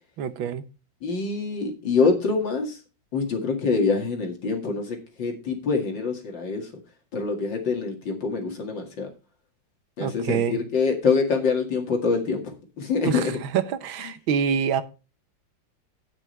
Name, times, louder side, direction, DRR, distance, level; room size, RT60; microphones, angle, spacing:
voice 1, 0.2-0.6 10.0-10.6 13.0-14.8, right 7 dB, 85° right, 1.7 m, -26 dB
voice 2, 1.0-2.8 3.1-6.7 7.1-9.1 10.0-13.4, left 4 dB, 70° left, 2.8 m, -25 dB
18.5 x 6.2 x 3.2 m
omnidirectional pair, 2.1 m